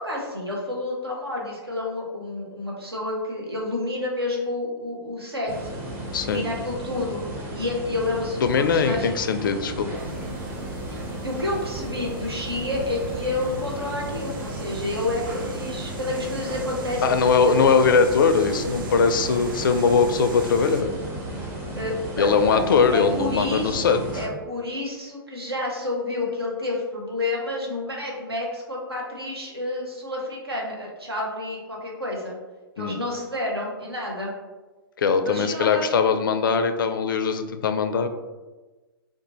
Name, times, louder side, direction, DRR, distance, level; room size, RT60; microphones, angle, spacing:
voice 1, 0.0-5.7 6.2-7.2 7.5-9.1 11.1-17.7 21.8-32.4 32.8-34.3 35.2-35.9, left 2 dB, 80° right, -2 dB, 1.0 m, -29 dB
sound 1, 5.5-24.3, right 1 dB, 15° right, 0.6 m, -34 dB
voice 2, 8.4-9.9 17.0-20.9 22.2-24.0 32.8-33.0 35.0-38.1, left 5 dB, 55° left, 8 dB, 0.4 m, -21 dB
sound 2, 10.0-20.8, right 4 dB, 60° right, 0.4 m, -39 dB
2.6 x 2.4 x 4.0 m, 1.2 s
figure-of-eight pair, 110°, 13 cm